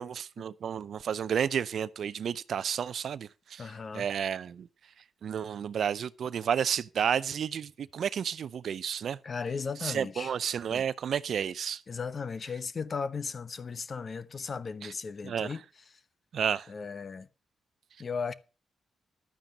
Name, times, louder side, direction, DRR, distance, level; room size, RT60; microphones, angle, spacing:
voice 1, 0.0-4.7 5.2-9.2 9.8-11.8 14.8-14.9 15.2-15.5 16.3-16.7, right 8 dB, 70° right, 0.5 m, -31 dB
voice 2, 3.6-4.1 9.2-10.3 10.7-10.9 11.9-15.6 16.7-17.3 18.0-18.3, left 5 dB, 45° left, 0.9 m, -36 dB
11.5 x 9.1 x 5.3 m
cardioid pair, 65°, 0 cm